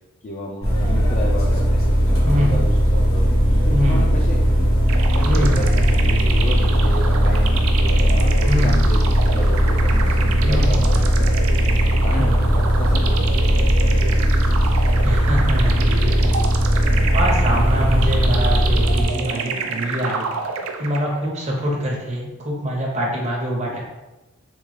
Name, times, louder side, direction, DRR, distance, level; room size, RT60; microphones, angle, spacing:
voice 1, 0.2-3.3 3.7-4.4 5.1-7.5 7.8-11.4 12.0-14.2 23.7-23.8, left 2 dB, 35° left, -3 dB, 0.3 m, -32 dB
sound 1, 0.6-19.1, equal, 85° left, 1.0 m, -18 dB
voice 2, 2.2-2.6 3.7-4.1 5.2-5.8 8.4-8.7 10.5-11.1 12.2-12.3 15.0-16.3 17.1-20.3 20.8-23.8, equal, 35° right, -2 dB, 0.7 m, -24 dB
sound 2, 4.9-21.3, right 5 dB, 90° right, 0.4 m, -29 dB
3.6 x 2.3 x 3.1 m, 1.1 s
head